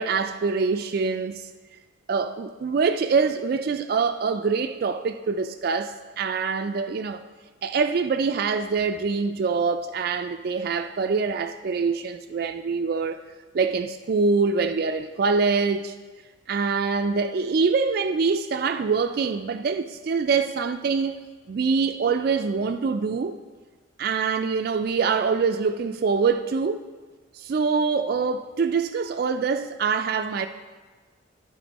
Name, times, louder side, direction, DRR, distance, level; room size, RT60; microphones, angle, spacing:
voice 1, 0.0-1.4 2.1-7.2 7.6-13.2 13.5-16.0 16.5-21.2 21.5-23.3 24.0-26.8 27.3-30.5, right 5 dB, 50° right, 0.3 m, -24 dB
10.0 x 9.4 x 4.0 m
head